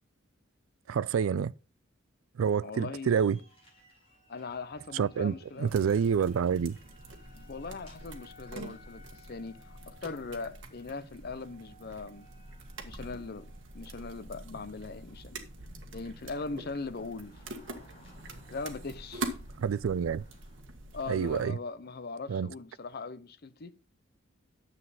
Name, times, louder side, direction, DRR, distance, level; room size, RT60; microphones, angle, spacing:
voice 1, 0.9-1.5 2.4-3.4 4.9-6.8 19.6-20.2 21.1-21.6 22.3-22.5, right 7 dB, 90° right, 0.4 m, -28 dB
voice 2, 2.6-3.1 4.3-5.8 7.3-12.3 12.8-13.5 13.7-15.4 15.9-17.4 18.5-19.2 20.9-23.8, left 4 dB, 50° left, 0.6 m, -40 dB
sound 1, 3.1-20.6, left 1 dB, 30° left, 6.1 m, -60 dB
sound 2, 5.6-21.4, right 2 dB, 65° right, 1.6 m, -45 dB
10.0 x 7.6 x 4.1 m
head